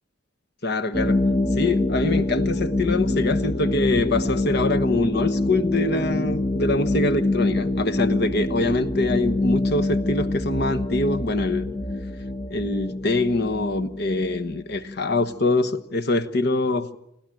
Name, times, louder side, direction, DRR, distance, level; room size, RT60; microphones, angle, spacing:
voice 1, 0.6-1.2 1.6-11.7 12.5-17.0, left 2 dB, 60° left, 13 dB, 1.2 m, -24 dB
sound 1, 0.9-15.3, left 2 dB, 20° left, 0.8 m, -25 dB
30.0 x 12.0 x 9.1 m, 0.84 s
head